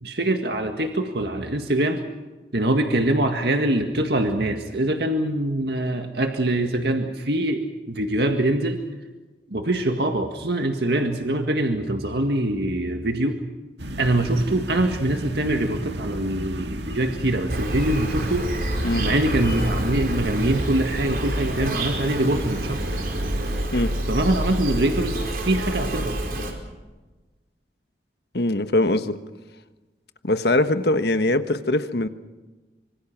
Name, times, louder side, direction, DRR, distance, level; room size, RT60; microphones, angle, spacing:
voice 1, 0.0-2.0 2.5-8.8 9.5-13.4 14.0-18.5 19.0-22.8 24.1-26.2, right 1 dB, 70° right, 5 dB, 1.9 m, -24 dB
sound 1, 13.8-23.6, right 1 dB, 90° right, 1.9 m, -33 dB
Insect, 17.5-26.5, right 1 dB, 55° right, 4.8 m, -28 dB
voice 2, 28.3-29.2 30.2-32.1, left 1 dB, 70° left, 9 dB, 1.4 m, -22 dB
26.0 x 25.0 x 6.1 m, 1.2 s
head